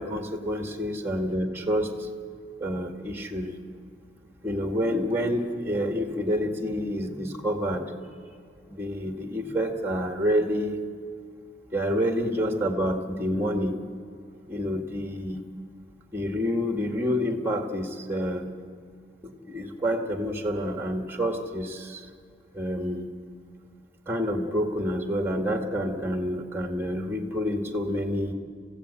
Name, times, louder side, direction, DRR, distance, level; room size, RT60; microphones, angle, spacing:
voice 1, 0.0-2.1 2.6-3.5 4.4-7.9 8.7-10.8 11.7-13.8 14.5-15.5 16.1-18.4 19.2-22.1 22.5-23.1 24.1-28.3, equal, 15° right, 4 dB, 2.0 m, -28 dB
27.0 x 16.0 x 8.3 m, 2.4 s
head